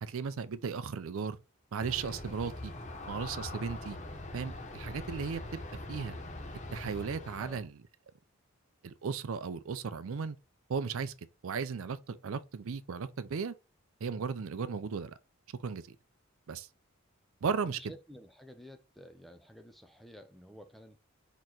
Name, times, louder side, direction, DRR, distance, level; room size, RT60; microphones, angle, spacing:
voice 1, 0.0-1.4 1.7-2.7 3.1-4.0 4.3-5.4 5.9-6.2 6.7-7.7 8.8-10.4 10.7-11.1 11.4-13.5 14.0-15.1 15.6-16.0 16.5-16.7 17.4-17.8, right 5 dB, 65° right, 0.4 m, -35 dB
Aircraft, 1.8-7.6, left 2 dB, 30° left, 0.7 m, -43 dB
voice 2, 17.6-21.0, equal, ahead, 0.4 m, -52 dB
4.3 x 3.0 x 3.8 m
head